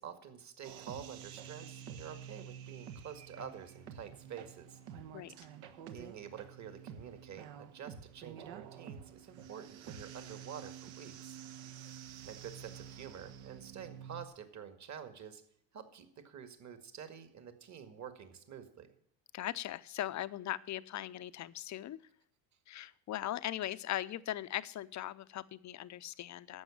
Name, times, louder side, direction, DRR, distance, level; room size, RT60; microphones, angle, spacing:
voice 1, 0.0-4.8 5.9-11.4 12.2-15.4 15.7-18.9, right 8 dB, 35° right, 9 dB, 2.0 m, -48 dB
sound 1, 0.6-14.3, right 8 dB, 70° right, 1.6 m, -49 dB
voice 2, 19.3-22.0 22.7-26.6, left 13 dB, 35° left, 15 dB, 0.7 m, -39 dB
12.0 x 8.1 x 7.2 m, 0.68 s
supercardioid pair, 110°, 47 cm